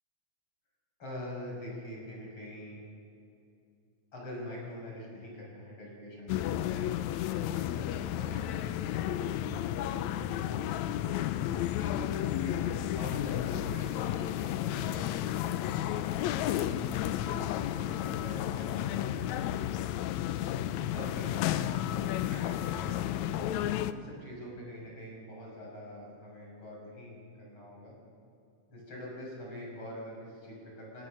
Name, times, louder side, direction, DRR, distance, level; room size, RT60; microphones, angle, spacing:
voice 1, 1.0-2.9 4.1-10.7 11.7-12.6 12.9-15.3 16.4-16.9 17.2-19.1 20.9-21.7 22.1-23.0 23.9-27.9 28.7-31.1, left 1 dB, 35° left, -3 dB, 6.8 m, -44 dB
sound 1, 6.3-23.9, left 12 dB, 80° left, 1.7 m, -32 dB
27.0 x 17.0 x 6.6 m, 2.7 s
omnidirectional pair, 3.9 m